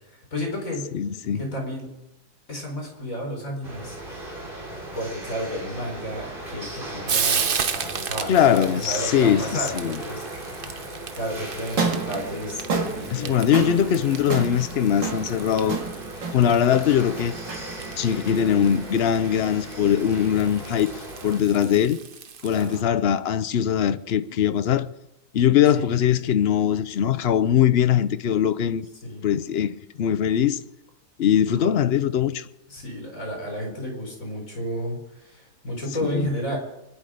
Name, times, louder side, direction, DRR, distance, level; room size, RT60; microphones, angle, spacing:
voice 1, 0.1-0.9 1.3-1.9 2.5-4.0 4.9-10.3 11.1-13.4 22.5-22.8 25.7-25.9 29.0-29.3 31.6-31.7 32.7-36.6, equal, 50° left, 5.0 m, -32 dB
voice 2, 0.9-1.4 8.3-10.0 13.1-15.8 16.3-17.3 18.0-22.0 22.4-24.9 25.3-28.9 29.2-30.6 31.2-32.5 36.1-36.3, left 9 dB, 65° left, 0.6 m, -21 dB
sound 1, 3.6-21.4, right 1 dB, 30° right, 3.6 m, -37 dB
Frying (food), 5.9-22.8, right 6 dB, 45° right, 0.7 m, -35 dB
sound 2, 11.7-19.9, right 4 dB, 85° right, 2.9 m, -32 dB
24.5 x 10.5 x 5.1 m
omnidirectional pair, 1.9 m